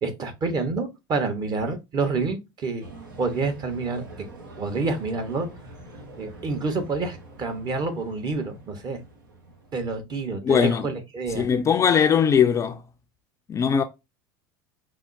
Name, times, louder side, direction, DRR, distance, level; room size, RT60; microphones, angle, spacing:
voice 1, 0.0-2.9 3.2-4.0 4.6-5.5 6.2-9.0 9.7-11.5, right 3 dB, 40° right, 1.1 m, -28 dB
sound 1, 2.8-10.0, right 1 dB, 80° right, 1.0 m, -45 dB
voice 2, 10.4-10.9 11.3-12.8 13.5-13.8, left 7 dB, 25° left, 0.4 m, -20 dB
5.5 x 2.1 x 2.6 m
hypercardioid pair, 80°, 11 cm